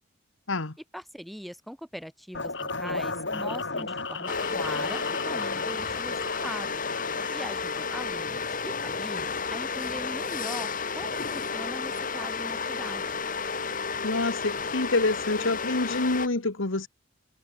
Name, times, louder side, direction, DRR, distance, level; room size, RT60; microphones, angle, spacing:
voice 1, 0.9-6.7 7.3-10.7 10.9-13.2, equal, ahead, 6.5 m, -41 dB
sound 1, 2.3-8.3, left 3 dB, 65° left, 5.7 m, -34 dB
sound 2, 4.3-16.3, left 5 dB, 45° left, 2.9 m, -32 dB
voice 2, 14.0-16.9, left 2 dB, 85° left, 1.7 m, -27 dB
head